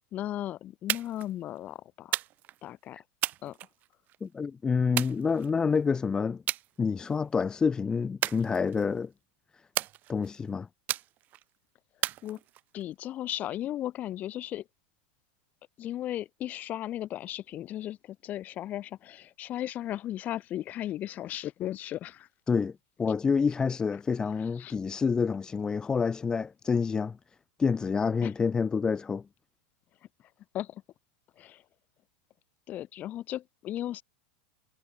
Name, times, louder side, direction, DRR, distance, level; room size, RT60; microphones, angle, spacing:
voice 1, 0.1-2.2 2.6-3.0 3.4-3.6 12.2-12.4 12.7-14.7 15.8-22.3 24.6-24.8 28.2-28.3 30.5-30.8 31.4-31.6 32.7-34.0, left 13 dB, 35° left, 4.2 m, -36 dB
sound 1, 0.9-1.3 2.1-2.6 3.2-4.2 5.0-5.8 6.5-6.7 7.1-7.4 8.2-9.0 9.8-10.4 10.9-11.4 12.0-12.8, right 15 dB, 35° right, 0.5 m, -34 dB
voice 2, 4.2-6.4 6.8-9.1 10.1-10.7 22.5-27.2 27.6-29.2, left 5 dB, 15° left, 0.6 m, -28 dB
supercardioid pair, 130°, 5 cm